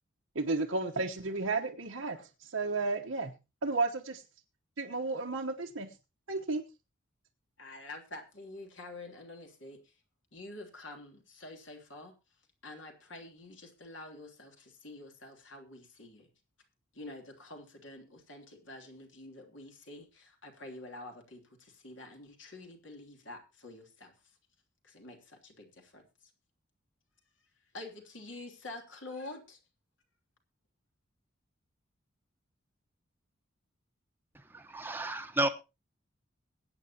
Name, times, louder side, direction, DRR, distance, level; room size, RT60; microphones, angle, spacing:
voice 1, 0.3-3.3 3.6-4.2 4.8-5.9 6.3-6.6, right 3 dB, 85° right, 1.2 m, -33 dB
voice 2, 7.6-9.8 10.3-12.1 12.6-16.3 16.9-24.1 24.8-26.0 27.7-29.6, left 2 dB, 65° left, 3.1 m, -47 dB
voice 3, 34.3-35.5, right 1 dB, 10° right, 1.0 m, -32 dB
22.0 x 9.1 x 2.9 m
head